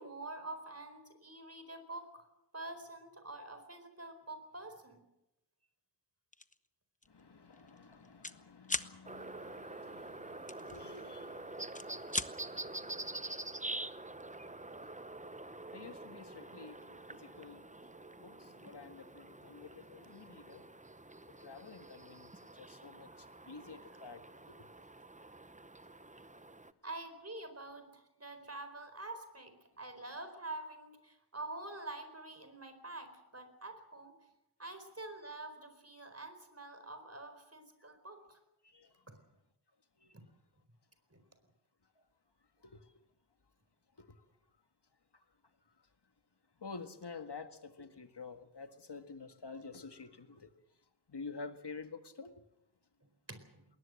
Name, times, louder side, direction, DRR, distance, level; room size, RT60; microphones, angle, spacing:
voice 1, 0.0-2.2 2.5-5.1 26.8-34.1 34.6-38.4 39.1-39.2 40.1-40.2 41.1-41.2 53.3-53.7, right 2 dB, 35° right, 4.4 m, -47 dB
sound 1, 6.3-6.6 7.0-7.2 7.5-8.4 8.6-8.9 10.5-11.3 11.6-12.3, left 2 dB, 20° left, 0.9 m, -38 dB
voice 2, 7.1-14.0 15.0-15.1 15.7-17.7 18.2-20.7 21.4-22.3 22.6-24.2 38.6-38.9 40.0-40.1 42.6-42.8 46.6-50.5 51.1-52.3, left 4 dB, 75° left, 1.8 m, -50 dB
sound 2, 9.0-26.7, right 2 dB, 20° right, 0.8 m, -47 dB
20.5 x 19.0 x 7.7 m
wide cardioid pair, 55°, 41 cm